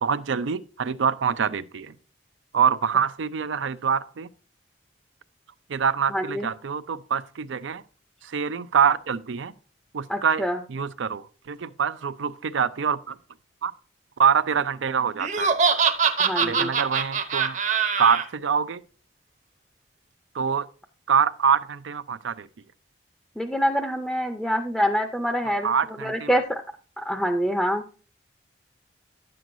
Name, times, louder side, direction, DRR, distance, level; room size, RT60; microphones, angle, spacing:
voice 1, 0.0-1.9 2.5-4.3 5.7-7.8 8.2-9.5 9.9-13.2 13.6-13.7 14.2-15.6 16.4-17.6 18.0-18.8 20.3-20.7 21.1-22.5 25.6-26.4, right 7 dB, 85° right, 0.5 m, -25 dB
voice 2, 6.1-6.5 10.1-10.6 16.2-16.7 23.4-25.7 26.0-26.6 27.0-27.8, equal, 5° left, 0.5 m, -25 dB
Laughter, 15.2-18.2, right 6 dB, 40° right, 0.7 m, -23 dB
10.0 x 7.6 x 2.6 m
head